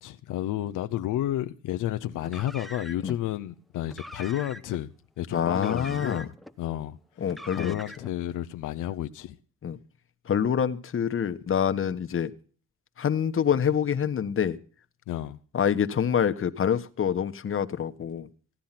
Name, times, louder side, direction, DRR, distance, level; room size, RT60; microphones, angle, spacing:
voice 1, 0.0-7.0 7.5-9.4 15.1-15.4, left 13 dB, 85° left, 0.8 m, -31 dB
Car, 2.2-3.2 3.8-4.8 5.5-6.5 7.2-8.2, equal, ahead, 0.9 m, -43 dB
voice 2, 5.3-6.2 7.2-7.8 9.6-9.8 10.3-12.3 13.0-14.6 15.5-18.3, left 8 dB, 45° left, 1.3 m, -26 dB
16.0 x 10.5 x 5.9 m
cardioid pair, 90°, 30 cm